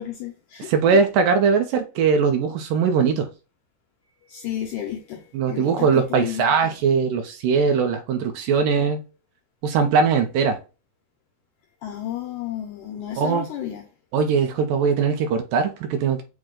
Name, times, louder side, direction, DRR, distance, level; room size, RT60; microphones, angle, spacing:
voice 1, 0.0-1.0 4.3-6.7 11.8-13.9, left 11 dB, 80° left, 1.8 m, -32 dB
voice 2, 0.6-3.3 5.3-9.0 9.6-10.6 13.2-13.5 14.1-16.2, right 5 dB, 75° right, 2.2 m, -20 dB
6.3 x 2.2 x 3.7 m
omnidirectional pair, 4.2 m